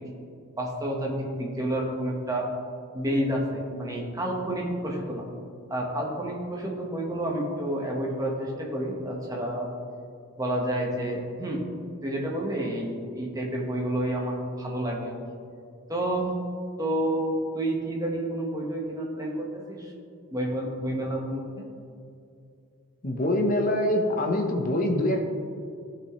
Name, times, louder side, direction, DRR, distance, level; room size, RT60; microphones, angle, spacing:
voice 1, 0.6-2.4 2.9-5.3 5.7-9.7 10.4-11.6 12.0-15.2 15.9-16.3 16.8-19.9 20.3-21.6, right 1 dB, 15° right, -2 dB, 1.3 m, -29 dB
voice 2, 23.0-25.3, left 1 dB, 40° left, 3 dB, 0.9 m, -24 dB
14.5 x 5.9 x 3.2 m, 2.4 s
head